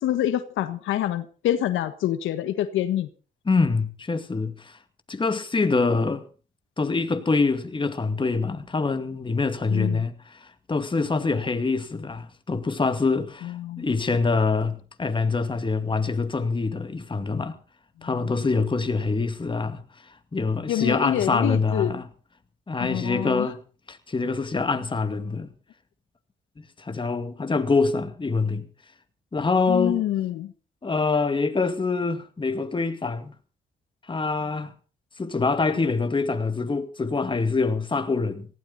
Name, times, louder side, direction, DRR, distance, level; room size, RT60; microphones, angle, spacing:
voice 1, 0.0-3.1 9.7-10.0 13.4-13.9 18.0-18.4 20.7-21.9 22.8-23.5 29.7-30.5, left 12 dB, 85° left, 1.5 m, -26 dB
voice 2, 3.5-4.8 5.1-6.3 6.8-17.6 18.0-19.8 20.3-22.0 22.7-23.6 23.9-25.5 26.8-28.7 29.3-30.0 30.8-33.3 34.1-34.7 35.2-38.5, left 4 dB, 25° left, 2.3 m, -25 dB
18.5 x 16.0 x 4.1 m
cardioid pair, 90°, 20 cm